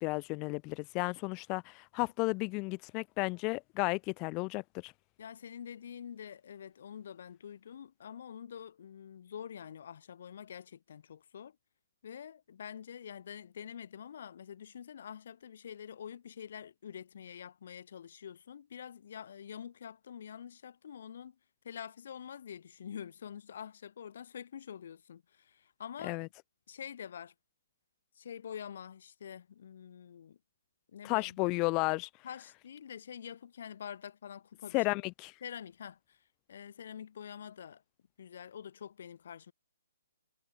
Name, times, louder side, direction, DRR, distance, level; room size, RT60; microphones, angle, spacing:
voice 1, 0.0-4.9 26.0-26.3 31.0-32.1 34.7-35.3, left 27 dB, 15° left, 0.8 m, -33 dB
voice 2, 5.2-11.6 12.0-21.4 21.6-26.2 26.7-27.3 28.1-30.4 30.9-31.5 32.2-34.8 35.4-36.2 36.5-37.8 38.2-39.5, left 8 dB, 45° left, 2.7 m, -46 dB
hypercardioid pair, 175°, 0 cm